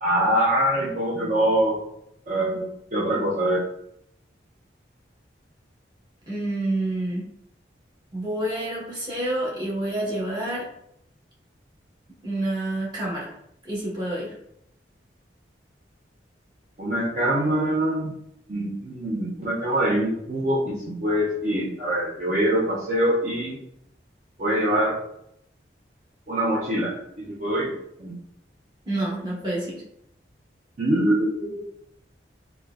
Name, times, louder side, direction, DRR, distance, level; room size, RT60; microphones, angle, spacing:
voice 1, 0.0-1.8 2.3-3.6 16.8-18.1 18.5-23.6 24.4-24.9 26.3-27.7 28.0-28.2 30.8-31.6, right 1 dB, 40° right, -7 dB, 0.5 m, -24 dB
voice 2, 6.3-7.3 8.1-10.7 12.2-13.3 13.6-14.3 28.8-29.8, right 1 dB, 25° right, -6 dB, 1.0 m, -28 dB
4.1 x 2.2 x 2.3 m, 0.74 s
head